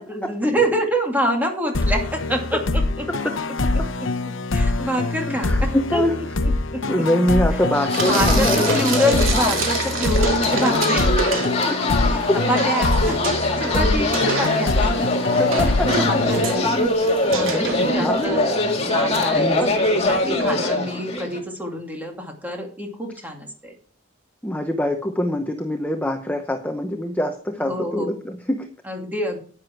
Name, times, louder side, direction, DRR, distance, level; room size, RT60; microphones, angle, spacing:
voice 1, 0.0-3.3 4.5-6.0 6.4-6.8 8.0-11.1 11.6-11.7 12.1-12.2 12.5-14.9 15.5-16.8 17.3-23.7 27.7-28.2 28.8-29.4, equal, 10° right, 2 dB, 2.5 m, -26 dB
sound 1, 1.7-17.2, left 2 dB, 75° left, 0.9 m, -24 dB
voice 2, 5.3-6.1 6.9-8.9 11.3-11.4 12.3-12.4 13.7-14.0 15.4-16.1 16.5-16.9 17.3-18.2 19.3-19.7 24.4-28.7, left 1 dB, 10° left, 5 dB, 0.8 m, -24 dB
sound 2, 7.7-21.4, left 2 dB, 30° left, 2.1 m, -22 dB
Frying (food), 7.9-11.9 12.2-18.2, right 4 dB, 90° right, 2.6 m, -29 dB
10.5 x 9.7 x 4.5 m, 0.42 s
head